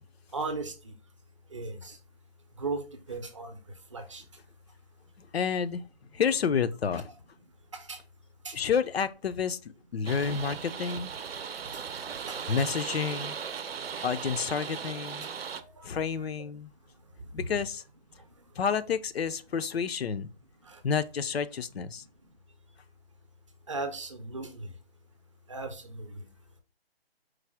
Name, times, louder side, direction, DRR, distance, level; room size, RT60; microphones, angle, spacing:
voice 1, 0.3-0.9 1.5-2.0 2.6-2.8 3.1-3.6 3.9-4.2 7.7-8.0 8.4-8.5 15.5-15.9 17.5-17.6 20.7-20.8 23.7-24.7 25.5-26.2, right 3 dB, 30° right, 0.6 m, -36 dB
voice 2, 5.3-5.8 6.1-7.1 8.5-9.6 9.9-11.1 12.5-13.4 14.0-15.3 15.8-16.7 17.3-17.8 18.6-20.3 20.8-22.0, left 6 dB, 80° left, 0.5 m, -29 dB
sound 1, 10.1-15.6, right 6 dB, 70° right, 0.6 m, -37 dB
4.7 x 2.1 x 4.7 m
hypercardioid pair, 165°, 30 cm